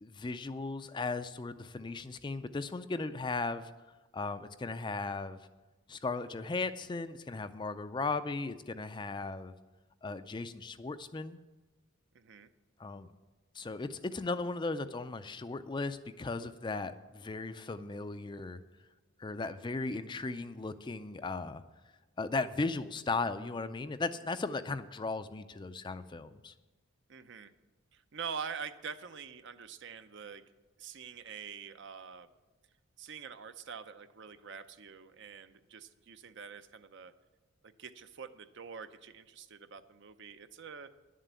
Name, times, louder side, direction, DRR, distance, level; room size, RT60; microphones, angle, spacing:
voice 1, 0.0-3.7 4.1-5.4 5.9-9.5 10.0-11.4 12.8-13.1 13.5-18.6 19.2-21.6 22.2-26.5, left 3 dB, 20° left, 11 dB, 0.4 m, -36 dB
voice 2, 12.1-12.5 27.1-27.5 27.9-30.4 30.8-32.3 33.0-37.1 37.6-40.9, right 6 dB, 55° right, 11 dB, 0.6 m, -45 dB
10.5 x 7.5 x 8.2 m, 1.2 s
head